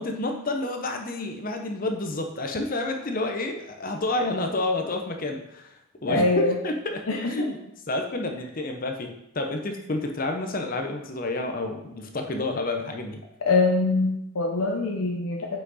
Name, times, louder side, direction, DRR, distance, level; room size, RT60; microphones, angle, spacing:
voice 1, 0.0-5.7 6.0-7.6 7.9-13.2, left 2 dB, 40° left, 4 dB, 0.7 m, -29 dB
voice 2, 6.1-6.6 7.1-7.5 13.5-15.6, left 3 dB, 75° left, 0 dB, 0.8 m, -24 dB
5.8 x 5.5 x 4.1 m, 0.85 s
head